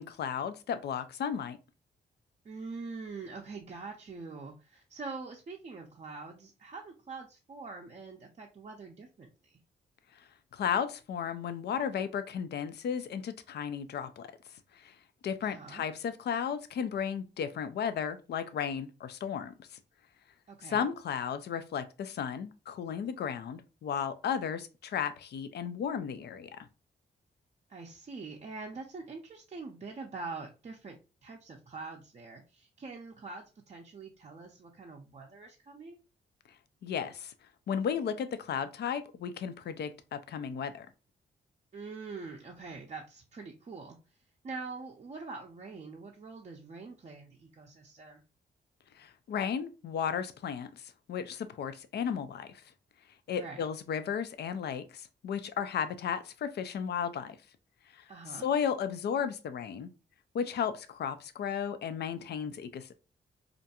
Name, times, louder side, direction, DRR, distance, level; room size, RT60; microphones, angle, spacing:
voice 1, 0.0-1.6 10.5-14.3 14.7-15.0 15.2-19.8 20.6-26.7 36.8-37.3 37.7-40.9 49.0-52.6 53.3-57.4 57.9-59.9 60.3-62.9, left 7 dB, 65° left, 0.4 m, -34 dB
voice 2, 2.4-9.6 15.4-15.8 20.5-20.9 27.7-36.0 41.7-44.0 44.4-48.2 53.3-53.6 58.1-58.5, right 4 dB, 40° right, 0.5 m, -44 dB
2.5 x 2.2 x 2.8 m
cardioid pair, 60°, 19 cm